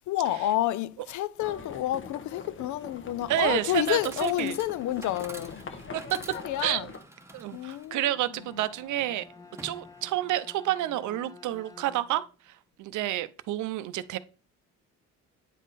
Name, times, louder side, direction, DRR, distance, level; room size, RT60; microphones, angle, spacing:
voice 1, 0.1-5.6 6.3-6.9 7.5-8.0, left 14 dB, 75° left, 0.5 m, -29 dB
Livestock farm animals working animals, 1.4-7.0, left 4 dB, 40° left, 1.0 m, -43 dB
Chatter / Coin (dropping), 3.3-10.4, right 2 dB, 10° right, 0.9 m, -49 dB
voice 2, 3.3-4.6 5.9-6.2 6.6-6.9 7.3-9.2 9.6-14.2, right 13 dB, 75° right, 0.5 m, -29 dB
Bowed string instrument, 8.0-12.3, left 4 dB, 10° left, 0.5 m, -51 dB
9.1 x 3.7 x 4.0 m
cardioid pair, 90°, 30 cm